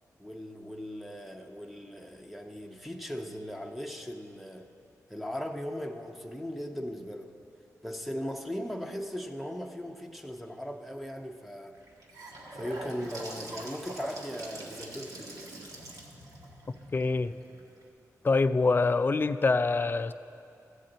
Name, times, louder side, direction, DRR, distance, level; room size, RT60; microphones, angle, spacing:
voice 1, 0.2-4.7 5.1-7.3 7.8-11.8 12.5-15.5, equal, ahead, 2 dB, 0.8 m, -38 dB
Gurgling / Sink (filling or washing) / Bathtub (filling or washing), 11.7-17.8, right 1 dB, 70° right, 1.5 m, -43 dB
voice 2, 16.9-17.3 18.2-20.1, left 3 dB, 35° left, 13 dB, 0.4 m, -25 dB
14.5 x 7.4 x 4.0 m, 2.6 s
cardioid pair, 60°, 6 cm